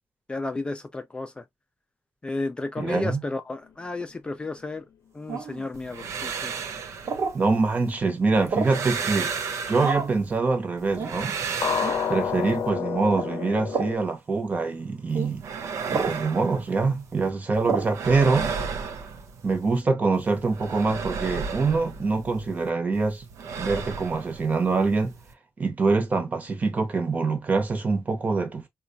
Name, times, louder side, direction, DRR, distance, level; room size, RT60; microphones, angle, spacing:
voice 1, 0.3-1.4 2.2-4.9 5.1-6.5, left 2 dB, 20° left, 0.3 m, -32 dB
voice 2, 2.8-3.2 7.3-9.3 9.7-11.4 12.1-15.4 15.9-18.5 19.4-23.3 23.6-25.1 25.6-28.6, right 4 dB, 30° right, 0.9 m, -24 dB
sound 1, 5.3-5.6 7.1-7.4 8.5-8.8 9.8-10.2 10.9-11.2 11.8-12.0 13.1-13.3 13.7-14.0 15.1-15.3 15.9-16.2 17.7-17.9, right 5 dB, 70° right, 1.2 m, -29 dB
sound 2, 5.7-7.9 8.3-10.4 10.8-12.7 15.1-17.3 17.5-19.8 20.1-22.7 22.9-25.3, right 5 dB, 85° right, 0.6 m, -34 dB
sound 3, 11.6-13.9, left 7 dB, 75° left, 0.6 m, -28 dB
4.1 x 2.3 x 2.5 m
wide cardioid pair, 140°, 5 cm